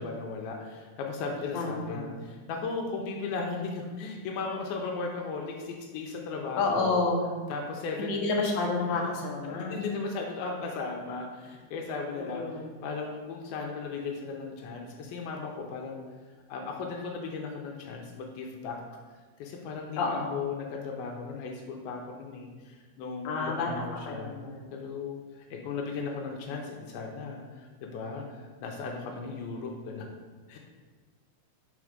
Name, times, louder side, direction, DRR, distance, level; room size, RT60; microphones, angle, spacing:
voice 1, 0.0-7.0 7.5-8.2 9.4-12.4 12.8-16.0 16.5-18.8 19.4-24.4 24.7-30.1 30.5-30.6, left 4 dB, 85° left, 1 dB, 2.5 m, -36 dB
voice 2, 1.5-2.1 6.6-7.4 8.0-9.8 12.2-12.8 20.0-20.4 23.2-24.7, left 3 dB, 65° left, -2 dB, 2.1 m, -30 dB
6.1 x 4.2 x 4.9 m, 1.4 s
omnidirectional pair, 4.4 m